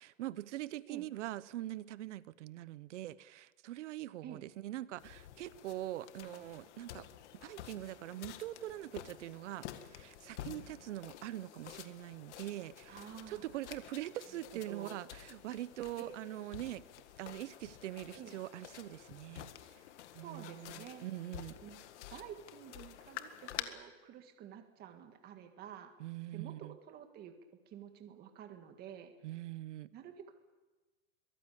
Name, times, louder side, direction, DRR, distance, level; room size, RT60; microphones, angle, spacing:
voice 1, 0.0-7.1 7.3-16.8 17.2-19.5 20.1-21.6 26.0-26.7 29.2-29.9, right 14 dB, 60° right, 18 dB, 0.9 m, -43 dB
sound 1, 5.0-23.6, left 12 dB, 55° left, 1.9 m, -50 dB
voice 2, 12.9-13.4 14.7-15.0 16.0-16.1 18.1-18.4 20.1-21.1 21.6-25.9 26.3-27.3 27.6-29.1 29.9-30.3, right 9 dB, 25° right, 6 dB, 1.7 m, -50 dB
23.5 x 18.5 x 8.5 m, 1.2 s
supercardioid pair, 155°, 41 cm